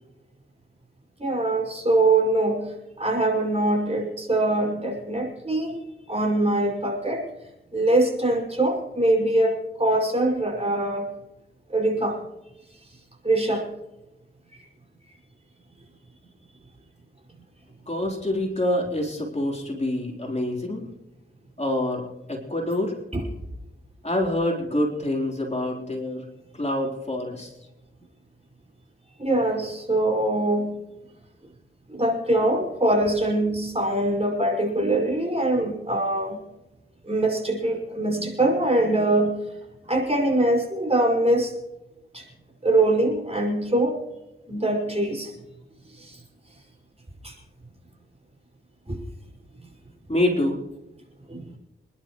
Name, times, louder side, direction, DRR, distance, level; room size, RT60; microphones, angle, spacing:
voice 1, 1.2-5.8 6.1-7.3 7.7-11.1 11.7-12.2 13.2-13.7 14.5-14.6 23.1-23.2 29.2-30.8 31.9-36.4 37.0-39.4 39.9-41.5 42.1-42.3 42.6-44.0 44.5-45.3 45.9-46.2 47.2-47.4 48.9-49.0 51.3-51.6, right 1 dB, 30° right, 0 dB, 5.8 m, -23 dB
voice 2, 17.9-20.9 21.6-22.0 22.3-22.9 24.0-26.2 26.6-27.5 50.1-50.6, left 1 dB, 30° left, -1 dB, 4.1 m, -26 dB
28.0 x 11.5 x 3.2 m, 0.97 s
cardioid pair, 50°, 21 cm